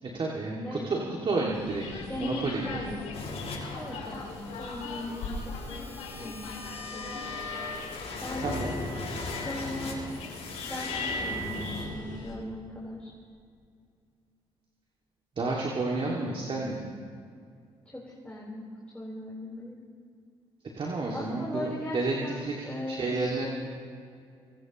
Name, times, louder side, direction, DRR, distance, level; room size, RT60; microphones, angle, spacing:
voice 1, 0.0-2.8 8.4-8.8 15.4-16.9 20.8-22.5 22.9-23.5, right 3 dB, 45° right, -2 dB, 2.3 m, -31 dB
voice 2, 0.5-0.9 2.1-3.0 3.7-6.6 6.9-7.2 8.2-8.4 9.4-10.0 10.6-13.1 17.9-19.8 21.1-23.5, left 1 dB, 10° left, -6 dB, 4.2 m, -39 dB
sound 1, 1.5-12.3, left 3 dB, 80° left, 3.8 m, -41 dB
sound 2, 3.1-11.9, left 2 dB, 65° left, 5.6 m, -38 dB
25.0 x 18.5 x 3.1 m, 2.3 s
hypercardioid pair, 55°, 12 cm